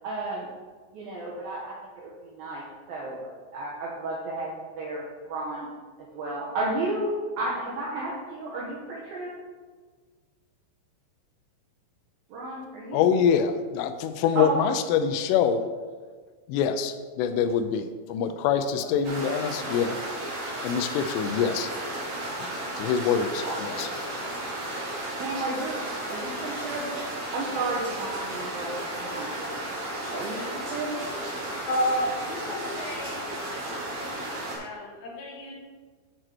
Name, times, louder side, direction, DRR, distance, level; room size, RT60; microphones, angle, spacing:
voice 1, 0.0-0.5 0.9-5.7 6.1-7.1 7.4-9.3 12.3-13.0 14.4-14.5 18.8-18.9 23.4-23.9 25.2-25.8 26.1-26.9 27.3-29.5 30.1-30.9, right 2 dB, 80° right, -4 dB, 2.1 m, -33 dB
voice 2, 12.9-15.6 16.5-20.0 20.6-21.7 22.4-22.5 22.8-23.9, left 7 dB, 90° left, 9 dB, 3.1 m, -25 dB
sound 1, 19.0-34.6, right 1 dB, 45° right, 2.5 m, -34 dB
voice 3, 31.6-33.2 34.6-35.5, equal, 55° left, -5 dB, 2.4 m, -30 dB
7.7 x 6.6 x 4.4 m, 1.5 s
omnidirectional pair, 5.6 m